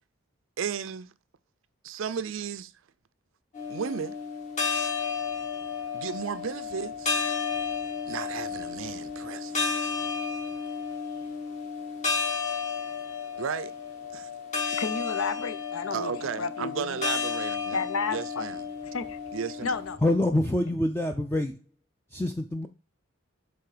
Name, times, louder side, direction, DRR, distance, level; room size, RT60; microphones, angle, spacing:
voice 1, 0.6-1.1 1.8-2.7 3.7-4.2 5.9-7.1 8.1-9.6 13.4-13.7 14.1-14.3 15.9-17.8 18.1-18.6 19.3-19.8, right 7 dB, 70° right, 0.4 m, -34 dB
sound 1, 3.5-20.0, left 5 dB, 35° left, 1.3 m, -32 dB
voice 2, 14.8-17.0 17.7-18.5 18.8-19.2 19.6-20.0, left 4 dB, 85° left, 0.7 m, -32 dB
voice 3, 20.0-21.6 22.1-22.7, left 1 dB, 10° left, 0.4 m, -26 dB
6.9 x 3.7 x 4.9 m
head